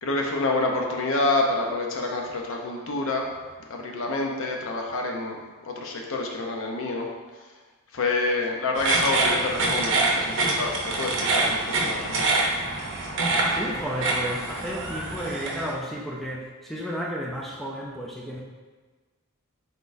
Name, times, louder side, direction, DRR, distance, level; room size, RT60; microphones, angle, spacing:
voice 1, 0.0-3.4 3.7-7.5 7.9-12.4, left 2 dB, 65° left, 1 dB, 0.6 m, -28 dB
sound 1, 8.8-15.7, right 2 dB, 60° right, 0.7 m, -25 dB
voice 2, 13.5-18.4, equal, ahead, -3 dB, 0.3 m, -32 dB
3.9 x 3.9 x 2.5 m, 1.3 s
head